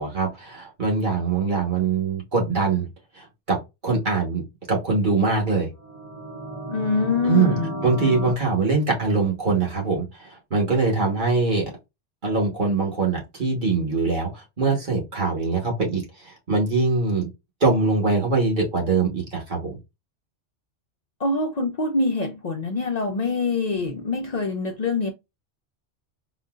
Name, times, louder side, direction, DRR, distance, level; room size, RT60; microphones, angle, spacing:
voice 1, 0.0-2.9 3.2-5.7 7.2-7.6 7.8-11.7 12.2-17.3 17.6-19.8, right 4 dB, 45° right, 1.3 m, -23 dB
sound 1, 5.8-8.3, right 1 dB, 15° right, 1.1 m, -33 dB
voice 2, 6.7-7.7 21.2-25.1, left 3 dB, 70° left, 0.4 m, -24 dB
3.9 x 2.2 x 2.3 m
omnidirectional pair, 1.2 m